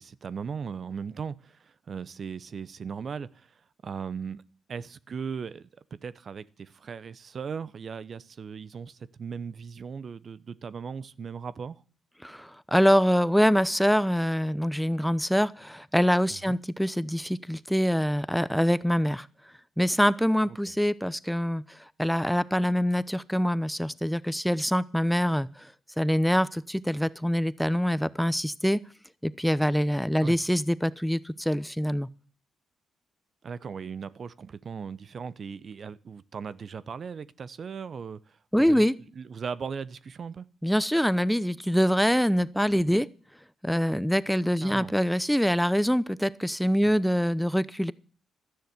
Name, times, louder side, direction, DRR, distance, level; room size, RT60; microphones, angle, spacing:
voice 1, 0.0-4.4 4.7-11.8 16.5-16.6 20.5-20.6 30.2-30.4 33.4-38.9 39.1-40.5 44.6-44.9 46.8-46.9, right 6 dB, 55° right, 0.7 m, -38 dB
voice 2, 12.2-19.3 19.8-25.7 26.0-28.8 29.2-32.1 38.5-38.9 40.6-43.1 43.6-47.9, equal, ahead, 0.8 m, -25 dB
13.0 x 10.0 x 8.0 m
supercardioid pair, 55°, 0 cm